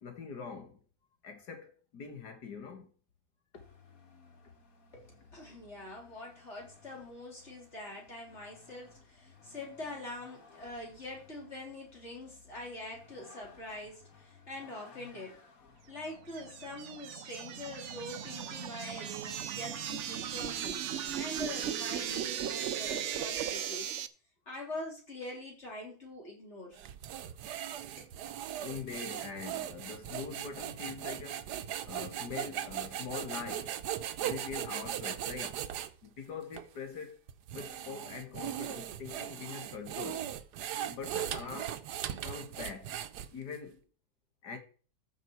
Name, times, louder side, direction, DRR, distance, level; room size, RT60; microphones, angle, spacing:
voice 1, 0.0-0.8 1.2-2.9 28.6-31.5 31.8-33.7 34.2-35.6 36.0-37.2 37.5-40.3 40.9-41.8 42.2-42.9 43.3-43.8 44.4-44.6, left 5 dB, 80° left, 2.3 m, -43 dB
Vehicle, 3.5-20.8, left 4 dB, 60° left, 1.8 m, -58 dB
voice 2, 4.9-15.4 15.9-20.8 21.1-23.9 24.5-26.8 28.0-28.1, left 1 dB, 40° left, 3.7 m, -44 dB
sound 1, 16.1-24.1, right 9 dB, 60° right, 0.8 m, -37 dB
sound 2, 26.8-35.9 36.5-36.7 37.3-43.6, right 11 dB, 80° right, 1.3 m, -39 dB
14.0 x 6.3 x 4.6 m
omnidirectional pair, 1.8 m